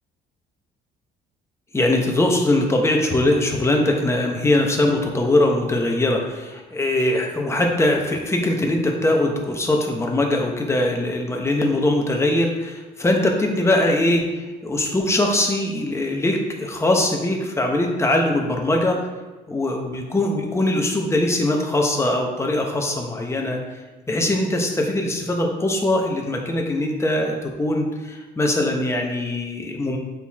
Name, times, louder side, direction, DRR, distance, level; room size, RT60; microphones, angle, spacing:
voice 1, 1.7-19.0 19.5-23.6 24.1-30.0, left 1 dB, 15° left, 1 dB, 1.1 m, -21 dB
6.9 x 4.5 x 3.6 m, 1.2 s
cardioid pair, 110°, 17 cm